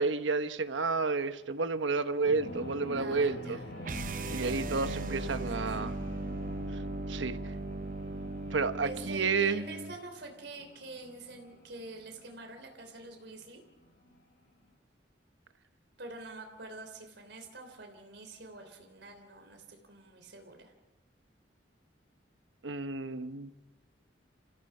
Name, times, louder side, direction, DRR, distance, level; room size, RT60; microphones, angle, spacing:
voice 1, 0.0-3.4 4.3-5.9 7.1-7.4 8.5-9.7 22.6-23.5, right 4 dB, 90° right, 1.2 m, -30 dB
sound 1, 2.2-14.2, left 1 dB, 60° left, 7.7 m, -46 dB
voice 2, 2.9-3.7 5.4-6.0 8.8-13.6 16.0-20.7, right 3 dB, 70° right, 3.2 m, -46 dB
sound 2, 3.8-10.0, right 2 dB, 45° right, 0.8 m, -38 dB
30.0 x 15.5 x 5.6 m
head